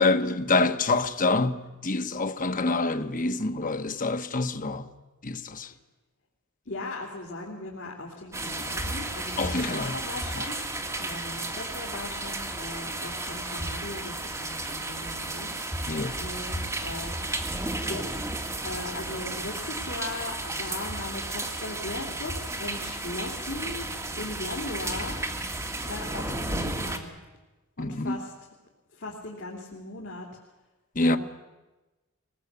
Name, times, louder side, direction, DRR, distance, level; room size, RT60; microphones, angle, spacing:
voice 1, 0.0-4.9 5.2-5.7 9.4-10.0 15.9-16.2 27.8-28.2 30.9-31.2, left 3 dB, 40° left, 1.2 m, -26 dB
voice 2, 6.6-10.6 11.0-17.1 17.8-18.4 18.6-23.8 24.2-25.2 25.9-27.1 27.8-28.3 28.9-30.3 31.0-31.2, left 2 dB, 55° left, 3.4 m, -38 dB
sound 1, 8.3-27.0, right 2 dB, 15° right, 2.0 m, -33 dB
23.0 x 19.0 x 8.2 m
head